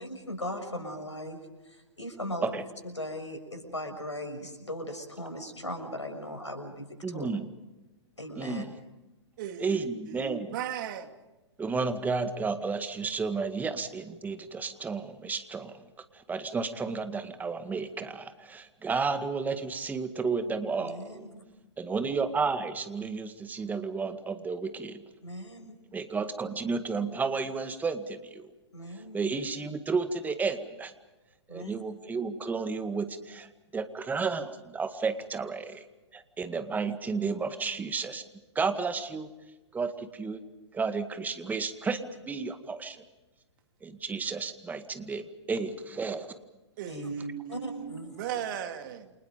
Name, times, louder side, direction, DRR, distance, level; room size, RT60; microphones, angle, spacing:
voice 1, 0.0-7.3 8.2-8.6 20.8-21.4 25.2-25.8 28.7-29.2 31.5-31.7 36.9-37.0 46.9-47.1 47.5-48.1, left 1 dB, 90° left, 6.3 m, -38 dB
voice 2, 7.0-7.5 8.4-8.7 9.6-10.6 11.6-15.8 16.1-21.2 21.8-25.0 25.9-28.5 29.1-30.9 31.5-35.8 36.1-38.2 38.6-39.3 39.7-40.4 40.7-43.0 43.8-46.3, right 4 dB, 10° right, 2.0 m, -32 dB
voice 3, 9.4-11.1 46.8-49.1, right 9 dB, 45° right, 2.8 m, -37 dB
29.5 x 27.5 x 5.2 m
figure-of-eight pair, 115°, 15 cm